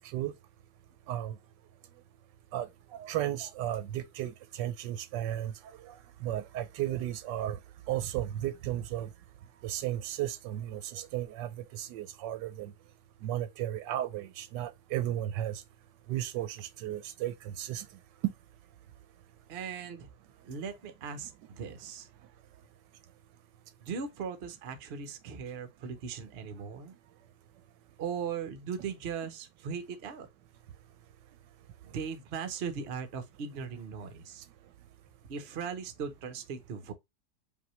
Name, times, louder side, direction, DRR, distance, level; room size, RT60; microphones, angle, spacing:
voice 1, 3.0-4.3 4.6-5.5 6.2-7.6 7.9-9.1 9.6-12.7 13.2-15.6 16.1-17.8, right 12 dB, 80° right, 1.2 m, -34 dB
voice 2, 19.5-20.1 20.4-22.1 23.8-27.0 28.0-30.3 31.8-34.4 35.3-36.9, right 6 dB, 55° right, 0.7 m, -38 dB
5.1 x 2.8 x 3.0 m
omnidirectional pair, 1.9 m